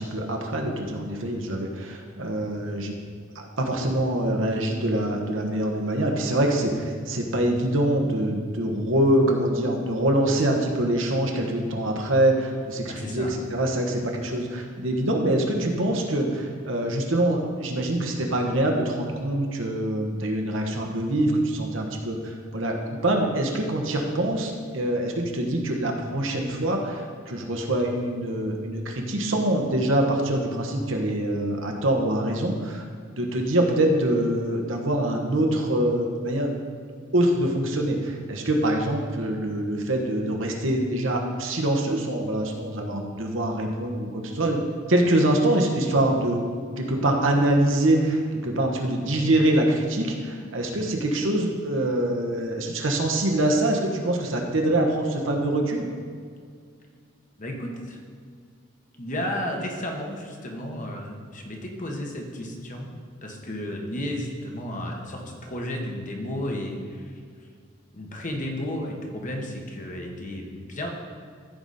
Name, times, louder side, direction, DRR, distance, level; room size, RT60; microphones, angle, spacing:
voice 1, 0.0-2.9 3.3-22.8 23.0-32.8 33.2-36.5 37.1-44.6 44.9-46.4 46.8-55.9, right 1 dB, 75° right, 2 dB, 1.3 m, -24 dB
voice 2, 12.9-13.3 57.4-58.0 58.9-62.9 63.2-67.2 67.9-70.9, left 1 dB, 40° left, 1 dB, 1.3 m, -33 dB
14.5 x 5.0 x 4.2 m, 2.1 s
head